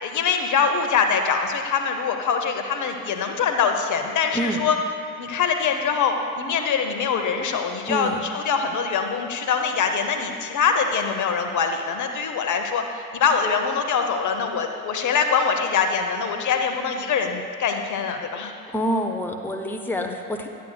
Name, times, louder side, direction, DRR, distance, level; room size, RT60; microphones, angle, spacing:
voice 1, 0.0-4.8 5.2-8.1 8.3-18.5, left 6 dB, 45° left, 5 dB, 0.8 m, -23 dB
voice 2, 4.3-4.6 7.9-8.2 18.7-20.5, equal, 5° left, 3 dB, 0.6 m, -26 dB
10.5 x 9.1 x 2.3 m, 2.5 s
figure-of-eight pair, 45°, 43 cm